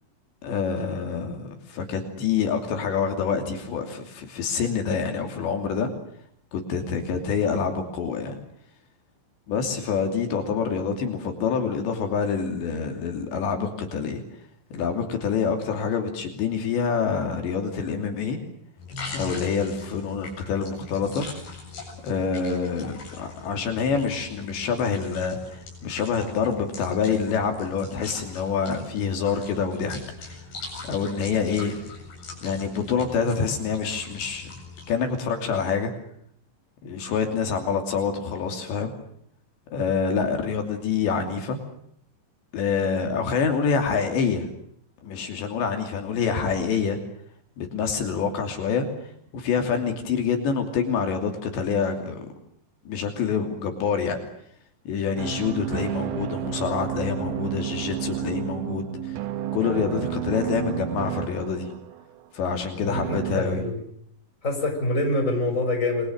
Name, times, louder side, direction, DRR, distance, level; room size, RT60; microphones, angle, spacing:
voice 1, 0.4-5.9 6.5-8.4 9.5-14.2 14.7-18.4 19.1-21.3 22.0-30.3 30.8-31.7 32.4-34.5 34.9-35.9 36.8-38.9 39.7-41.6 42.5-44.5 45.0-47.0 47.6-48.9 49.3-52.3 52.9-54.2 54.9-59.2 59.5-61.7 62.3-63.6, left 6 dB, 75° left, 5 dB, 5.1 m, -26 dB
sound 1, 18.8-35.0, left 3 dB, 55° left, 9.6 m, -41 dB
sound 2, 55.2-62.2 62.9-63.4, right 10 dB, 80° right, 3.8 m, -31 dB
voice 2, 62.7-63.8 64.4-66.1, left 2 dB, 15° left, 4 dB, 6.3 m, -26 dB
28.0 x 23.0 x 6.5 m, 0.69 s
omnidirectional pair, 5.2 m